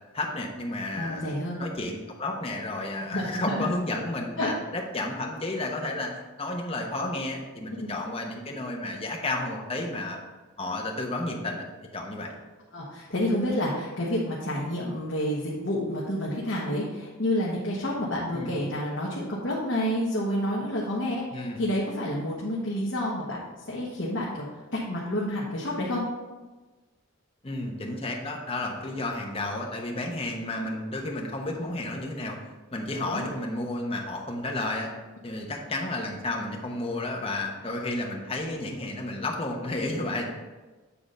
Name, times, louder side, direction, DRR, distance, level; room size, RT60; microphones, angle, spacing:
voice 1, 0.1-1.3 1.6-6.1 6.4-10.2 10.6-11.6 11.9-12.3 18.3-18.5 21.3-21.6 27.4-32.4 32.7-34.9 35.2-40.3, left 2 dB, 25° left, 0 dB, 1.0 m, -32 dB
voice 2, 0.9-1.6 3.1-3.7 4.4-4.5 7.8-7.9 12.7-23.4 23.7-26.0 33.1-33.2, left 1 dB, 55° left, -5 dB, 1.2 m, -29 dB
8.5 x 3.8 x 5.4 m, 1.2 s
head